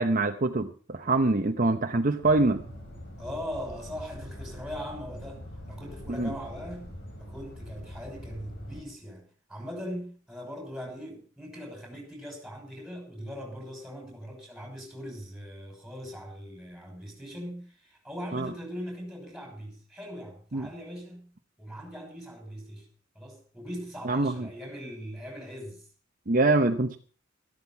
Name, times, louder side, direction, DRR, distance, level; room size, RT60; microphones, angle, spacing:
voice 1, 0.0-2.6 6.1-6.3 18.3-18.5 20.5-20.7 24.0-24.3 26.3-27.0, right 2 dB, 40° right, 0.9 m, -24 dB
sound 1, 2.2-8.8, left 1 dB, 60° left, 5.0 m, -44 dB
voice 2, 3.2-6.9 7.2-21.3 21.6-22.9 23.1-25.9, equal, ahead, 5.9 m, -40 dB
13.5 x 12.5 x 5.8 m
head